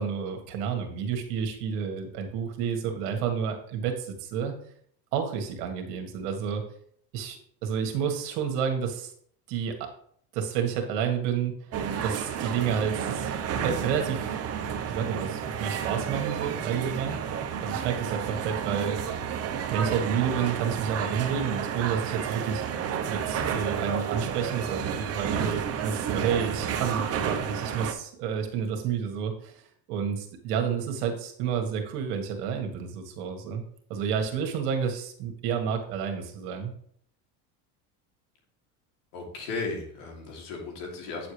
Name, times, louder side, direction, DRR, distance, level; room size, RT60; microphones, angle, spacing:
voice 1, 0.0-4.5 5.1-6.6 7.1-9.1 9.5-9.9 10.3-11.6 12.0-13.3 13.6-14.3 14.9-19.0 19.7-22.8 23.1-29.6 29.9-33.6 33.9-36.7, right 7 dB, 70° right, 4 dB, 1.7 m, -30 dB
sound 1, 11.7-27.9, right 8 dB, 30° right, 0.8 m, -31 dB
voice 2, 39.1-41.3, left 3 dB, 65° left, 0 dB, 2.9 m, -35 dB
8.7 x 7.0 x 3.3 m, 0.63 s
supercardioid pair, 125°, 46 cm